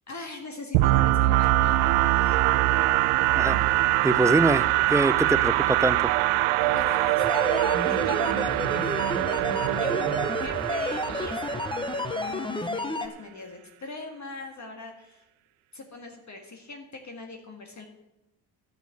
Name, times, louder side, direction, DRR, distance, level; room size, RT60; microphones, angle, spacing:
voice 1, 0.1-2.4 5.1-5.2 6.6-15.2 15.7-17.9, left 3 dB, 35° left, 3 dB, 1.8 m, -41 dB
sound 1, 0.7-12.5, right 16 dB, 85° right, 0.5 m, -23 dB
voice 2, 4.0-6.1, right 2 dB, 5° right, 15 dB, 0.4 m, -24 dB
sound 2, 7.2-13.1, left 2 dB, 10° left, 0.9 m, -31 dB
10.5 x 6.4 x 8.3 m, 0.94 s
supercardioid pair, 70°, 47 cm